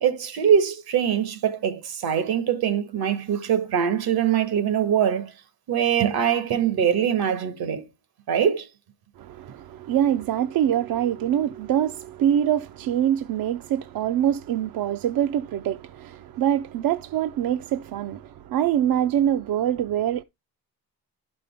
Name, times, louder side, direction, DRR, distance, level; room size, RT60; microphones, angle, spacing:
voice 1, 0.0-5.3 5.7-7.8 8.3-8.7, right 8 dB, 85° right, 1.6 m, -23 dB
voice 2, 9.2-20.2, right 10 dB, 70° right, 0.6 m, -24 dB
11.5 x 5.3 x 3.4 m
cardioid pair, 80°, 36 cm